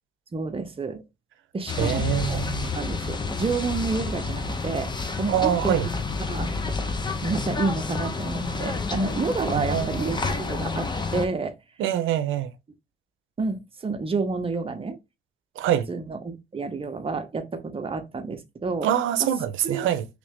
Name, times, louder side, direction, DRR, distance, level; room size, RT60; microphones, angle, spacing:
voice 1, 0.3-1.0 1.5-4.9 5.2-5.8 6.3-6.5 7.2-11.5 13.4-15.0 15.9-18.9 19.6-19.9, right 4 dB, 30° right, 0.7 m, -29 dB
sound 1, 1.7-11.3, left 4 dB, 20° left, 0.7 m, -29 dB
voice 2, 1.8-2.7 5.3-5.9 9.5-10.2 11.8-12.5 15.6-15.9 18.8-20.1, right 11 dB, 80° right, 0.5 m, -25 dB
3.2 x 2.5 x 3.5 m
cardioid pair, 90°, 20 cm